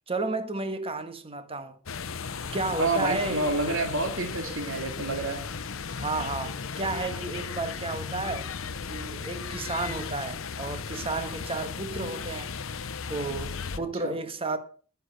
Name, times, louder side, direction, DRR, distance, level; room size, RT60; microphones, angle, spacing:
voice 1, 0.1-1.8 2.5-3.5 6.0-8.5 8.9-12.5 13.1-14.6, right 3 dB, 25° right, 1.5 m, -32 dB
sound 1, 1.9-13.8, left 5 dB, 70° left, 0.8 m, -36 dB
voice 2, 2.8-5.4 14.0-14.2, right 2 dB, 70° right, 2.4 m, -28 dB
10.0 x 9.9 x 6.4 m
head